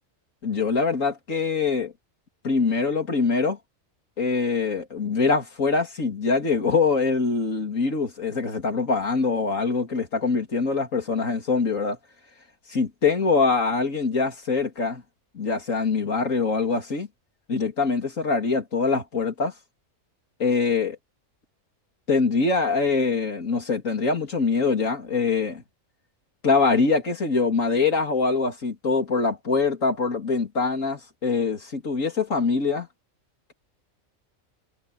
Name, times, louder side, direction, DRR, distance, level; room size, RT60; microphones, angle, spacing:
voice 1, 0.4-1.9 2.4-3.6 4.2-12.0 12.7-15.0 15.3-17.1 17.5-19.5 20.4-21.0 22.1-25.6 26.4-32.9, left 4 dB, 70° left, 3.4 m, -24 dB
omnidirectional pair, 1.4 m